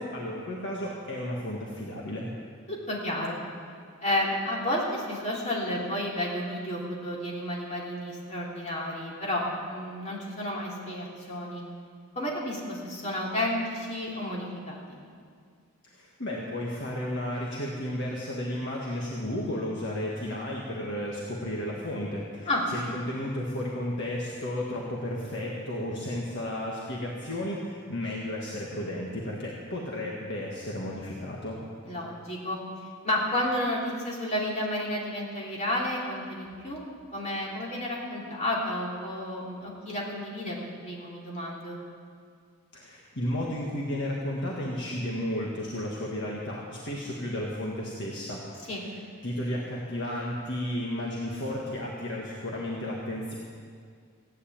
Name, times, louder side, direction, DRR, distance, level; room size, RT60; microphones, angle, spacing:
voice 1, 0.0-2.3 15.8-31.6 42.7-53.3, left 1 dB, 50° left, -3 dB, 1.8 m, -33 dB
voice 2, 2.7-3.4 4.0-9.4 9.7-11.6 12.2-15.0 22.5-22.6 31.8-32.6 33.0-36.8 37.1-40.6 40.8-41.8 48.7-48.8, left 1 dB, 30° left, -4 dB, 3.3 m, -31 dB
16.0 x 9.7 x 8.8 m, 2.1 s
head